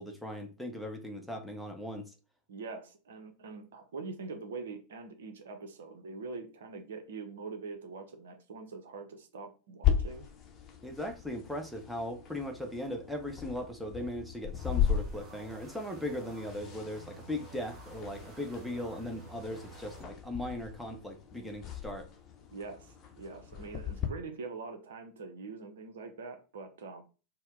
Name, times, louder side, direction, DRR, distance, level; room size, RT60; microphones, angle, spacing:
voice 1, 0.0-2.1 10.8-22.1, left 1 dB, ahead, 2 dB, 0.8 m, -38 dB
voice 2, 2.5-10.3 22.5-27.0, right 4 dB, 65° right, 6 dB, 0.8 m, -44 dB
sound 1, 9.8-24.1, left 9 dB, 30° left, 0.7 m, -37 dB
sound 2, 14.5-20.1, right 4 dB, 25° right, 1.3 m, -51 dB
4.3 x 2.2 x 3.6 m, 0.34 s
figure-of-eight pair, 90°, 0 cm